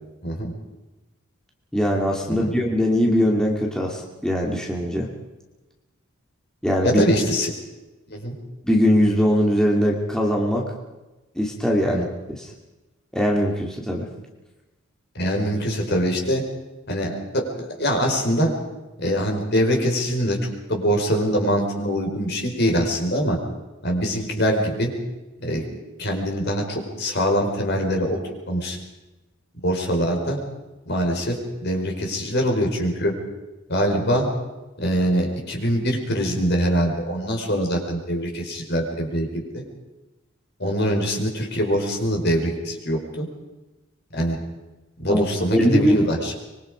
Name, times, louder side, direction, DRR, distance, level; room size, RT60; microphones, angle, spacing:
voice 1, 1.7-5.1 6.6-7.0 8.6-10.7 11.4-12.5 13.1-14.1 45.1-45.2 45.5-46.0, equal, 5° left, -1 dB, 2.5 m, -21 dB
voice 2, 6.8-7.5 8.1-8.3 11.8-12.0 15.1-16.4 16.9-18.5 19.0-20.4 20.7-23.4 23.8-24.9 25.4-25.6 26.0-28.2 28.5-28.8 29.6-30.4 30.9-33.1 33.7-34.3 34.8-39.6 40.6-43.3 44.1-44.4 45.0-46.3, equal, 55° left, 2 dB, 5.0 m, -23 dB
25.0 x 23.0 x 5.1 m, 1.1 s
head